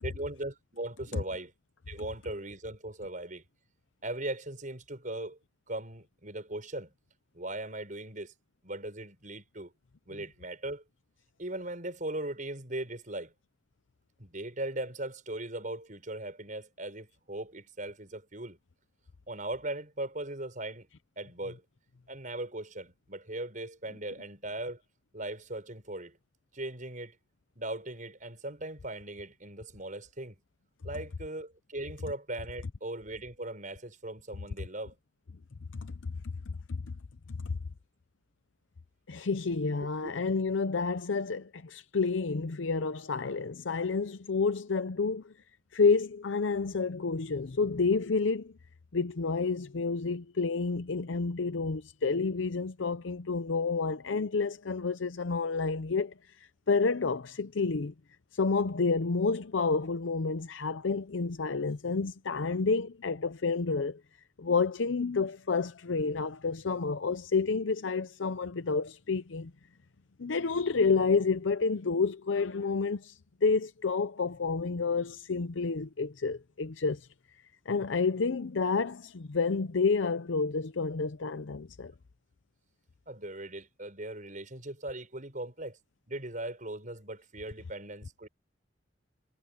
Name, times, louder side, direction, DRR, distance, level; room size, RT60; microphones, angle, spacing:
voice 1, 0.0-1.5 1.9-3.4 4.0-5.4 5.7-6.9 7.3-8.3 8.6-9.7 10.1-10.8 11.4-13.3 14.2-18.6 19.3-20.9 21.2-21.6 22.1-24.8 25.1-26.2 26.5-27.2 27.6-30.4 30.8-34.9 39.8-40.1 83.1-85.8 86.1-88.3, right 1 dB, 45° right, 7.0 m, -39 dB
voice 2, 35.7-36.1 36.7-36.8 37.3-37.6 39.1-45.3 45.7-48.5 48.9-57.9 58.3-64.0 64.4-69.5 70.2-81.9, left 4 dB, 80° left, 0.7 m, -29 dB
head